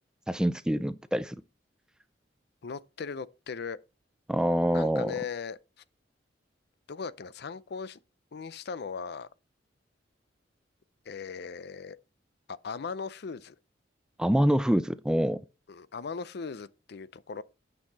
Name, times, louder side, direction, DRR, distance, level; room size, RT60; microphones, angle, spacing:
voice 1, 0.3-1.4 4.3-5.1 14.2-15.4, equal, 5° right, 0.4 m, -25 dB
voice 2, 2.6-3.8 4.7-5.6 6.9-8.0 8.3-9.3 11.1-12.0 12.5-13.5 15.7-17.4, left 5 dB, 65° left, 0.5 m, -38 dB
9.0 x 5.7 x 4.1 m
head